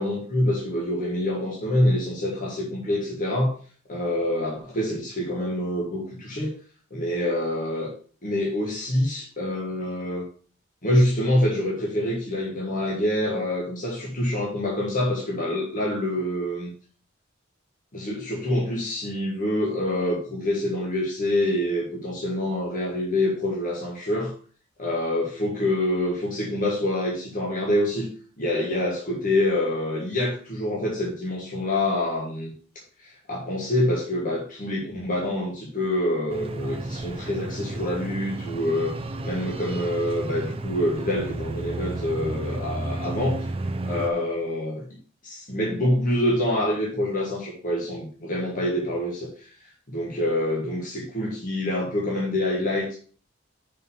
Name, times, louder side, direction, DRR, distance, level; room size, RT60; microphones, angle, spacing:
voice 1, 0.0-3.5 3.9-6.5 6.9-7.9 8.2-10.2 10.8-16.7 17.9-24.3 24.8-28.1 28.4-32.5 33.0-38.9 39.2-43.5 43.9-44.8 45.2-49.5 49.9-53.0, left 1 dB, 45° left, -3 dB, 1.6 m, -26 dB
sound 1, 36.3-44.1, right 2 dB, 30° right, 0.6 m, -32 dB
5.8 x 5.3 x 5.6 m, 0.43 s
head